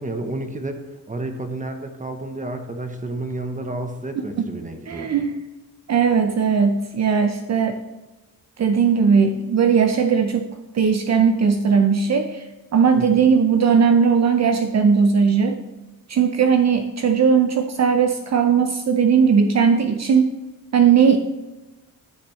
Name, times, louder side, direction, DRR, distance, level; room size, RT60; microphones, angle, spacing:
voice 1, 0.0-5.2 13.0-13.3, right 2 dB, 20° right, 6 dB, 0.9 m, -31 dB
voice 2, 4.9-5.4 5.9-7.8 8.6-10.5 10.7-12.4 12.7-15.6 16.1-20.3 20.7-21.2, right 6 dB, 50° right, 6 dB, 0.6 m, -18 dB
12.0 x 5.9 x 3.2 m, 1.1 s
cardioid pair, 105°, 35 cm